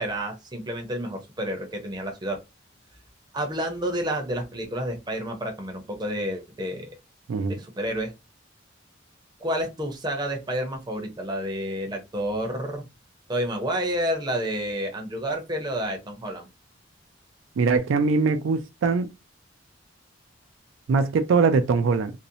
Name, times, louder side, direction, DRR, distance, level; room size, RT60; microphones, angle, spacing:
voice 1, 0.0-2.4 3.3-6.9 7.5-8.1 9.4-12.8 13.3-16.5, equal, 20° right, 0.6 m, -29 dB
voice 2, 7.3-7.6 17.6-19.1 20.9-22.1, right 4 dB, 75° right, 0.3 m, -22 dB
2.6 x 2.0 x 2.6 m
head